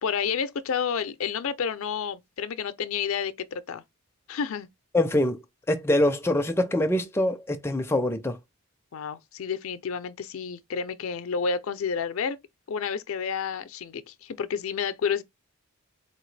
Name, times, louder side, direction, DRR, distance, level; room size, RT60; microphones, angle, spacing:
voice 1, 0.0-3.8 4.3-4.7 8.9-12.4 12.7-15.2, left 6 dB, 70° left, 0.5 m, -30 dB
voice 2, 4.9-5.4 5.7-8.4, left 1 dB, 10° left, 0.4 m, -24 dB
4.2 x 2.9 x 3.2 m
head